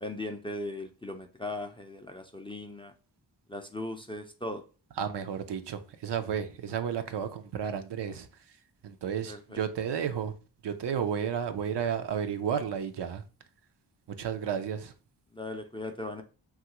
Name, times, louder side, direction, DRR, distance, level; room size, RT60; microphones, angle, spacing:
voice 1, 0.0-2.9 3.5-4.6 9.3-9.6 15.3-16.2, left 2 dB, 10° left, 0.4 m, -38 dB
voice 2, 5.0-8.3 8.8-10.3 10.6-13.2 14.2-14.9, right 8 dB, 65° right, 0.5 m, -32 dB
3.1 x 2.4 x 2.8 m
cardioid pair, 50°, 45 cm